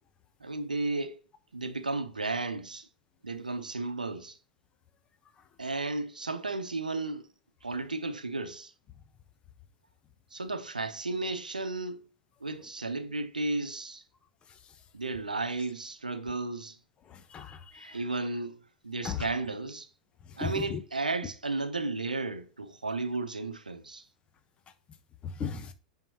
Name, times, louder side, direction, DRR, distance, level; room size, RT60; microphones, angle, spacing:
voice 1, 0.4-1.1 1.5-2.9 3.2-4.4 5.6-7.3 7.6-8.7 10.3-12.0 12.4-14.0 14.9-16.8 17.7-18.6 18.8-19.9 20.4-24.0, right 3 dB, 80° right, 0.8 m, -33 dB
voice 2, 17.1-18.0 19.0-19.3 20.4-20.8 25.2-25.7, left 6 dB, 25° left, 1.0 m, -36 dB
9.1 x 5.7 x 3.0 m
figure-of-eight pair, 95°, 4 cm